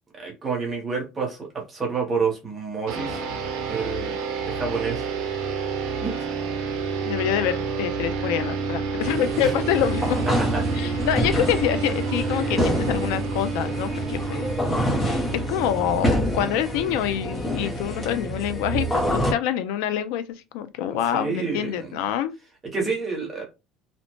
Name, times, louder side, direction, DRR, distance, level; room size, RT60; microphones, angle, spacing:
voice 1, 0.1-3.2 3.7-4.2 4.5-5.0 6.0-6.1 9.4-9.5 10.5-10.6 21.1-22.0 22.7-23.4, right 5 dB, 15° right, 0.9 m, -28 dB
sound 1, 2.9-17.7, right 4 dB, 65° right, 0.7 m, -29 dB
voice 2, 7.1-10.2 10.7-14.5 15.0-20.2 20.5-22.3, left 10 dB, 80° left, 0.3 m, -26 dB
sound 2, 9.0-19.3, equal, 15° left, 0.7 m, -27 dB
2.6 x 2.1 x 2.9 m
cardioid pair, 170°, 0 cm